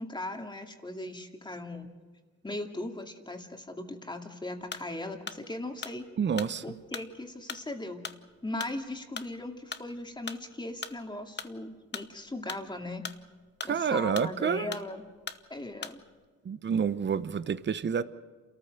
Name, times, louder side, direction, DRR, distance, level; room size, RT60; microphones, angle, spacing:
voice 1, 0.0-1.9 2.4-6.0 6.6-8.0 8.4-13.0 13.6-15.0 15.5-16.0, left 2 dB, 15° left, 2.5 m, -38 dB
sound 1, 4.6-16.2, left 6 dB, 35° left, 1.1 m, -41 dB
voice 2, 6.2-6.6 13.7-14.7 16.4-18.0, right 7 dB, 40° right, 0.9 m, -28 dB
28.5 x 14.0 x 6.7 m
cardioid pair, 85°, 29 cm